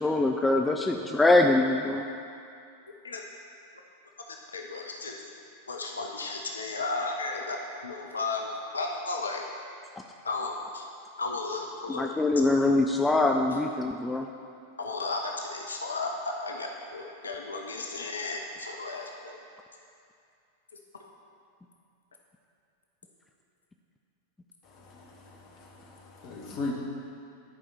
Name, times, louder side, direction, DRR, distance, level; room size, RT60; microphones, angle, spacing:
voice 1, 0.0-2.0 11.9-14.3, left 2 dB, 10° left, 3 dB, 0.4 m, -23 dB
voice 2, 4.5-5.3 5.7-9.4 10.2-10.8 11.2-12.1 14.8-19.4, left 3 dB, 75° left, 1 dB, 0.6 m, -34 dB
voice 3, 24.7-26.7, left 3 dB, 40° left, -1 dB, 1.3 m, -38 dB
10.5 x 4.9 x 4.3 m, 2.4 s
figure-of-eight pair, 90°, 0 cm